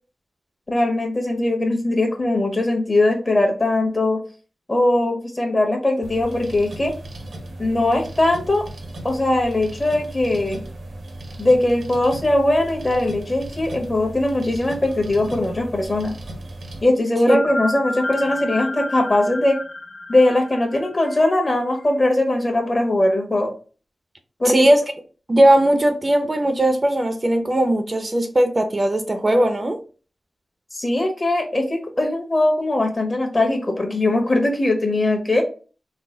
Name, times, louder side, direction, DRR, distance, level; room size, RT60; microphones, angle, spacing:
voice 1, 0.7-4.2 4.7-6.9 7.6-8.7 9.0-10.6 11.4-16.1 16.8-19.6 20.1-23.5 24.4-24.7 30.7-35.4, left 1 dB, 35° left, 1.3 m, -20 dB
sound 1, 6.0-16.8, right 1 dB, 75° right, 0.9 m, -36 dB
sound 2, 14.9-15.8 16.0-16.1 17.3-22.2, left 2 dB, 55° left, 0.5 m, -32 dB
voice 2, 24.4-24.8 25.3-29.8, right 1 dB, 35° right, 0.6 m, -18 dB
3.9 x 2.1 x 3.8 m
cardioid pair, 60°, 0 cm